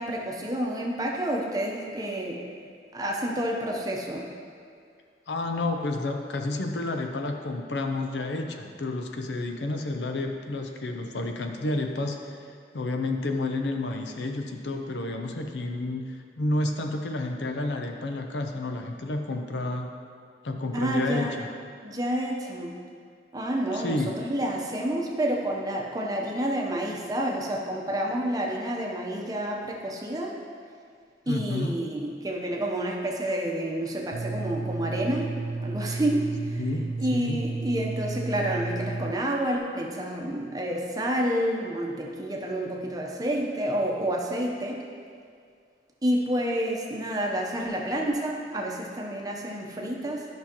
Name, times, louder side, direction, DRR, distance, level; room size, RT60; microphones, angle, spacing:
voice 1, 0.0-2.4 2.9-4.3 20.7-21.3 21.8-22.7 23.3-30.3 31.3-36.6 37.0-44.8 46.0-50.3, right 1 dB, 20° right, 0 dB, 0.8 m, -29 dB
voice 2, 5.3-19.9 20.4-21.5 23.7-24.1 31.3-31.7 36.6-36.8 37.1-37.4, left 2 dB, 80° left, 4 dB, 0.7 m, -30 dB
sound 1, 34.1-39.1, right 3 dB, 80° right, 0.4 m, -32 dB
12.0 x 5.6 x 3.0 m, 2.2 s
head